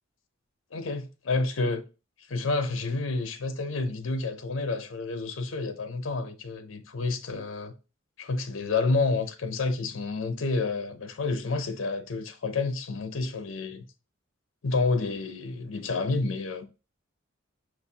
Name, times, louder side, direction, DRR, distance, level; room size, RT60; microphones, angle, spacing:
voice 1, 0.7-1.8 2.3-7.7 8.2-13.9 14.6-16.6, left 3 dB, 70° left, 0.6 m, -29 dB
6.0 x 2.6 x 2.7 m
head